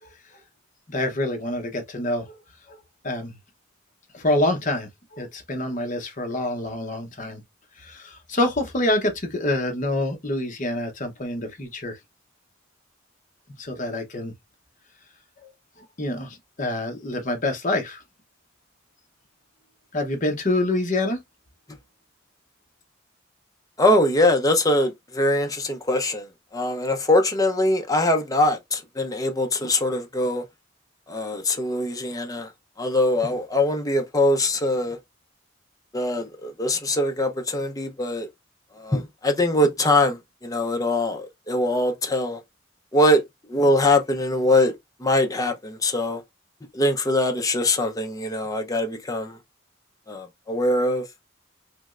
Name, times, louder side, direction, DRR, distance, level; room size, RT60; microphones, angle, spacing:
voice 1, 0.9-2.4 2.7-2.8 3.0-3.3 4.1-7.4 7.8-12.0 13.6-14.3 15.4-15.5 15.8-18.0 19.9-21.2, left 1 dB, 40° left, 0.9 m, -26 dB
voice 2, 23.8-30.4 31.1-32.5 32.8-35.0 35.9-38.3 38.7-42.4 42.9-43.2 43.5-44.7 45.0-46.2 46.7-49.4 50.1-51.1, left 1 dB, 20° left, 0.6 m, -22 dB
3.4 x 3.1 x 2.4 m
head